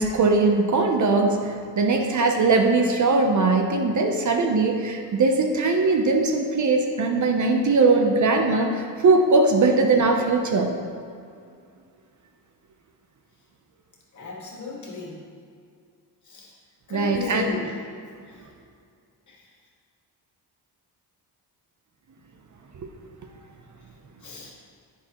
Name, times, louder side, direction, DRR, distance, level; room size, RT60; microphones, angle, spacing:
voice 1, 0.0-10.7 16.9-17.5, right 3 dB, 45° right, 4 dB, 0.7 m, -20 dB
voice 2, 14.2-15.1 16.3-16.5 16.9-17.7 24.2-24.5, left 4 dB, 45° left, -3 dB, 1.9 m, -33 dB
10.5 x 9.8 x 3.0 m, 2.3 s
wide cardioid pair, 175°, 42 cm